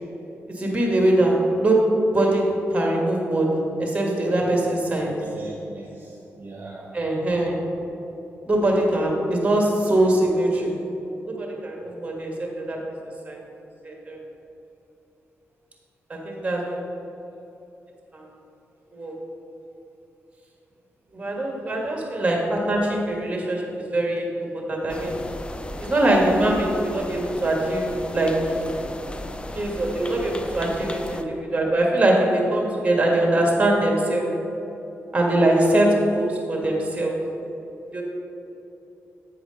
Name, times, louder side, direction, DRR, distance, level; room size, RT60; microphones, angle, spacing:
voice 1, 0.5-5.2 6.9-7.6 8.5-10.7 11.3-12.8 13.2-13.4 13.8-14.2 16.1-16.8 18.1-18.3 18.9-19.2 21.1-25.2 25.8-28.6 29.5-34.3 35.1-37.3 37.9-38.0, right 1 dB, 25° right, 0 dB, 1.7 m, -22 dB
voice 2, 5.0-6.9 21.8-21.9, right 2 dB, 45° right, -2 dB, 0.9 m, -39 dB
sound 1, 24.9-31.2, left 1 dB, 20° left, 0.5 m, -36 dB
8.5 x 4.9 x 5.2 m, 3.0 s
cardioid pair, 75°, 5 cm